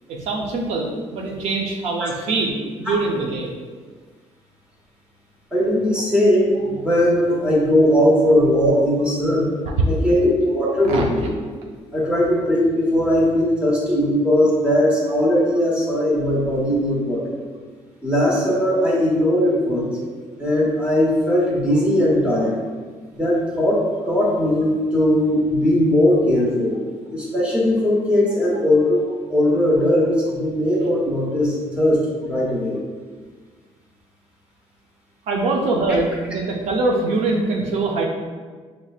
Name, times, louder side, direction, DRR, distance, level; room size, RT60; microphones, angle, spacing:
voice 1, 0.1-3.5 10.9-11.1 35.3-38.1, right 3 dB, 70° right, 0 dB, 0.5 m, -23 dB
voice 2, 5.5-9.5 9.9-11.3 11.9-17.4 18.0-20.0 20.4-22.6 23.1-26.7 27.1-32.8, left 1 dB, 10° right, -4 dB, 1.0 m, -19 dB
5.7 x 3.2 x 2.4 m, 1.5 s
cardioid pair, 160°, 12 cm